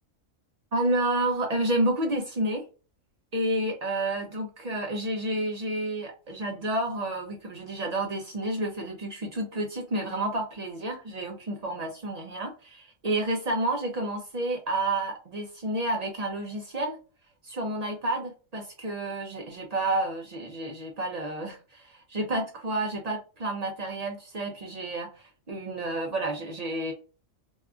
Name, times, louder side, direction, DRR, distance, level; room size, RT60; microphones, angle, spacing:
voice 1, 0.7-2.7 3.3-17.0 17.4-26.9, right 1 dB, 55° right, 2 dB, 0.4 m, -30 dB
2.8 x 2.3 x 2.3 m, 0.33 s
omnidirectional pair, 1.4 m